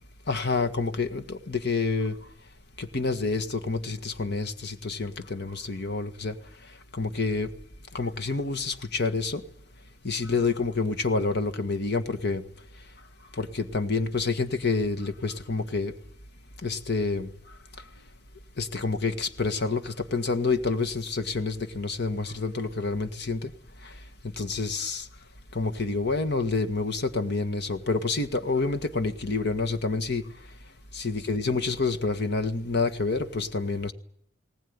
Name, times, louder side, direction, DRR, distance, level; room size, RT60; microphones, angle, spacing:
voice 1, 0.3-2.1 2.8-6.3 6.9-7.5 7.9-9.4 10.0-12.4 13.4-15.9 16.6-17.3 18.6-23.5 23.8-23.9 24.4-25.1 25.5-30.2 30.9-33.9, left 3 dB, 55° left, 8 dB, 1.8 m, -28 dB
20.0 x 19.0 x 9.7 m, 0.66 s
head